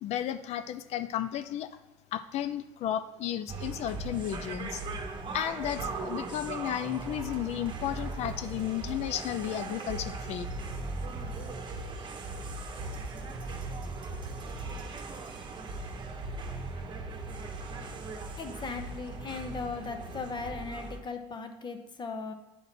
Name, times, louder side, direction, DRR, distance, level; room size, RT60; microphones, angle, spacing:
voice 1, 0.0-1.7 2.1-4.8 5.3-10.5, left 11 dB, 50° left, 12 dB, 0.4 m, -33 dB
sound 1, 3.5-21.0, right 3 dB, 35° right, 0.9 m, -38 dB
voice 2, 18.4-22.3, left 4 dB, 30° left, 7 dB, 0.8 m, -38 dB
8.3 x 3.9 x 4.2 m, 1.0 s
hypercardioid pair, 65°, 15 cm